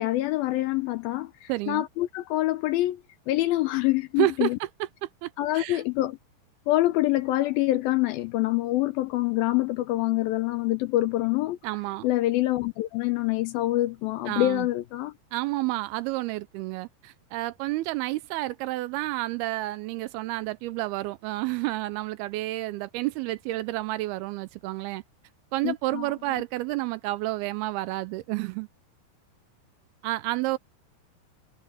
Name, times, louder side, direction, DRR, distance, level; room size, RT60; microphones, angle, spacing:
voice 1, 0.0-4.6 5.4-6.2 6.7-11.6 12.0-15.1 25.6-26.1, left 16 dB, 80° left, 2.2 m, -26 dB
voice 2, 1.5-1.9 4.2-5.8 11.6-12.1 14.3-14.7 15.3-25.0 25.5-28.7 30.0-30.6, right 18 dB, 80° right, 2.3 m, -30 dB
omnidirectional pair, 4.8 m